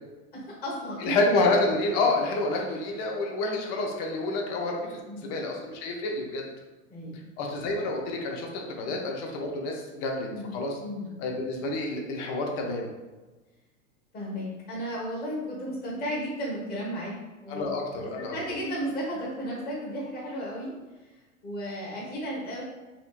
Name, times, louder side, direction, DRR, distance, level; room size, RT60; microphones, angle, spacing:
voice 1, 0.3-1.1 5.0-5.3 6.9-7.3 8.8-9.0 10.3-10.5 10.8-11.1 14.1-17.1 17.4-17.6 18.0-20.7 21.4-22.6, equal, 25° left, -6 dB, 1.4 m, -34 dB
voice 2, 1.0-6.4 7.4-10.8 11.2-12.9 17.5-18.3, left 2 dB, 40° left, 1 dB, 0.8 m, -28 dB
4.2 x 2.8 x 2.4 m, 1.2 s
hypercardioid pair, 100°, 40 cm